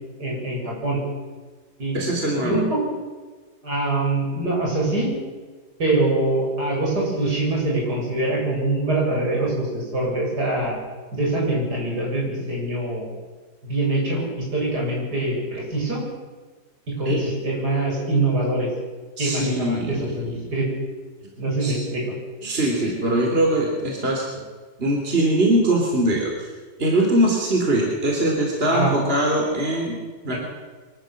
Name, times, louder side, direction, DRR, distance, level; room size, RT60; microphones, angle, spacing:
voice 1, 0.2-1.0 1.8-2.8 3.6-5.1 5.8-10.8 11.1-13.1 13.6-16.0 16.9-18.7 19.2-20.7 21.4-22.1 28.7-28.9, right 2 dB, 60° right, -2 dB, 7.5 m, -24 dB
voice 2, 1.9-2.6 17.1-17.2 19.2-20.4 21.6-21.7 22.4-24.5 24.8-26.5 26.8-30.0 30.2-30.3, right 1 dB, 30° right, 0 dB, 3.4 m, -22 dB
24.0 x 14.0 x 7.7 m, 1.4 s
omnidirectional pair, 1.9 m